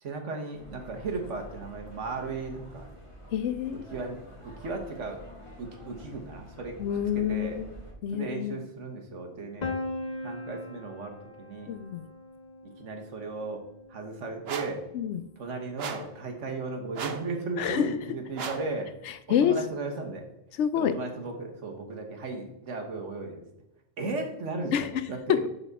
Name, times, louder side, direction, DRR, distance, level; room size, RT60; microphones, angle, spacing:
voice 1, 0.0-2.8 3.9-5.2 5.6-6.8 7.1-7.6 8.1-9.7 10.2-11.7 12.8-13.6 13.9-14.8 15.4-18.9 19.3-20.3 20.7-23.4 24.0-25.4, right 3 dB, 75° right, 3 dB, 1.5 m, -36 dB
sound 1, 0.5-7.9, equal, 25° left, 1.4 m, -48 dB
voice 2, 3.3-3.9 6.8-7.8 8.0-8.6 11.7-12.0 14.9-15.3 17.6-18.0 19.1-19.5 20.6-20.9 24.0-24.1 24.7-25.0, left 9 dB, 75° left, 12 dB, 0.8 m, -28 dB
Piano, 9.6-15.4, left 2 dB, 45° left, 0.7 m, -40 dB
sound 2, 14.4-14.8 15.8-16.2 16.9-17.3 18.3-18.7, right 6 dB, 60° right, 0.9 m, -36 dB
11.0 x 4.1 x 3.5 m, 0.85 s
omnidirectional pair, 1.3 m